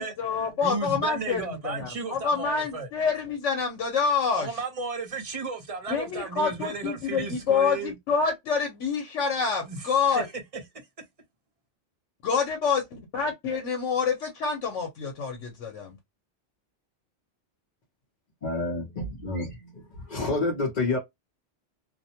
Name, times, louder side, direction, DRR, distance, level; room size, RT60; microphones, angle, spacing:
voice 1, 0.0-4.6 5.9-10.3 12.2-16.0, left 5 dB, 85° left, 1.0 m, -27 dB
voice 2, 0.6-2.9 4.3-7.9 9.7-9.8 10.1-10.2, right 4 dB, 35° right, 0.7 m, -34 dB
voice 3, 18.4-21.0, left 2 dB, 45° left, 0.7 m, -29 dB
2.5 x 2.0 x 2.7 m
omnidirectional pair, 1.2 m